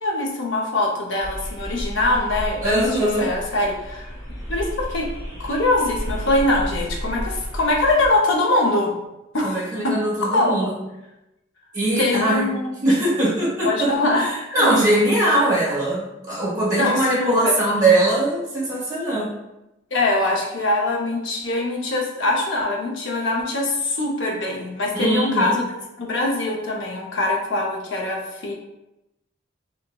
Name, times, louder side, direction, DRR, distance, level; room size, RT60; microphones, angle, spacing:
voice 1, 0.0-4.1 4.5-5.1 5.4-8.9 9.3-10.7 12.0-12.7 13.7-14.2 14.5-14.7 16.7-17.5 19.9-25.7 26.0-28.5, left 2 dB, 65° left, 0 dB, 0.6 m, -23 dB
sound 1, 1.2-8.1, equal, 20° left, 1.4 m, -32 dB
voice 2, 2.6-3.3 9.4-10.7 11.7-12.5 12.8-19.3 24.9-25.6, right 1 dB, 20° right, -8 dB, 1.0 m, -21 dB
2.8 x 2.6 x 2.2 m, 0.93 s
head